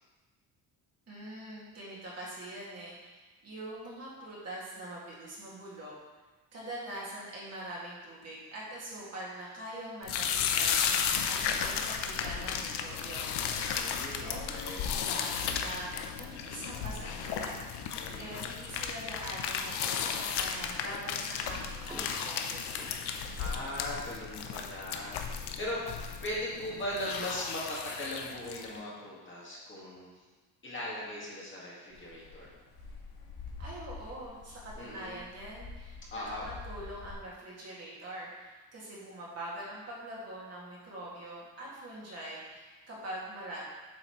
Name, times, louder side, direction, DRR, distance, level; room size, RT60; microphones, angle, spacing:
voice 1, 1.1-5.9 6.5-13.3 14.2-22.7 33.6-43.6, right 1 dB, 40° right, -6 dB, 2.0 m, -44 dB
sound 1, 10.0-28.8, left 7 dB, 85° left, 0.7 m, -34 dB
voice 2, 13.7-14.9 18.0-18.4 23.4-30.1 30.6-32.5 34.8-35.2 36.1-36.5, left 1 dB, 30° left, -6 dB, 1.8 m, -39 dB
sound 2, 21.6-26.7, equal, 5° right, 0.9 m, -54 dB
sound 3, 31.9-37.1, left 4 dB, 50° left, 1.5 m, -47 dB
7.9 x 5.7 x 3.0 m, 1.3 s
cardioid pair, 145°, 39 cm